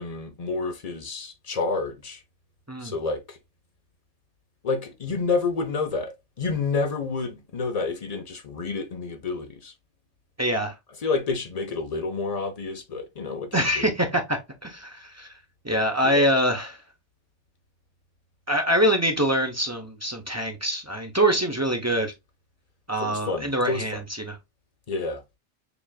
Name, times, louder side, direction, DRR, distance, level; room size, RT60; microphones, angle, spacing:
voice 1, 0.0-2.2 2.8-3.4 4.6-9.7 11.0-13.9 16.1-16.3 23.0-24.0 24.9-25.2, left 4 dB, 40° left, 0.8 m, -29 dB
voice 2, 10.4-10.7 13.5-15.3 15.6-16.8 18.5-22.1 22.9-24.4, equal, 20° right, 0.5 m, -24 dB
6.9 x 2.5 x 2.4 m
omnidirectional pair, 1.2 m